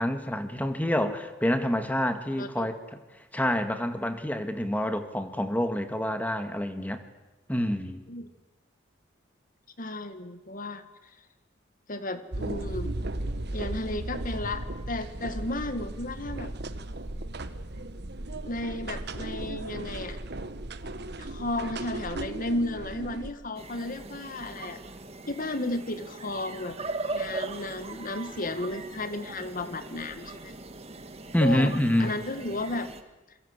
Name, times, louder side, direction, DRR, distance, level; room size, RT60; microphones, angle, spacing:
voice 1, 0.0-3.0 3.3-7.0 7.5-8.0 31.3-32.1, left 1 dB, 10° left, 7 dB, 1.9 m, -27 dB
voice 2, 2.4-2.7 8.1-8.3 9.8-10.8 11.9-13.0 13.5-16.5 18.4-20.2 21.2-24.8 25.3-26.8 27.1-30.5 31.4-32.9, left 2 dB, 45° left, 10 dB, 1.9 m, -33 dB
sound 1, 12.3-23.3, right 2 dB, 55° right, 1.4 m, -36 dB
sound 2, 23.5-33.0, right 3 dB, 30° right, 1.8 m, -39 dB
28.0 x 23.5 x 8.3 m, 1.1 s
head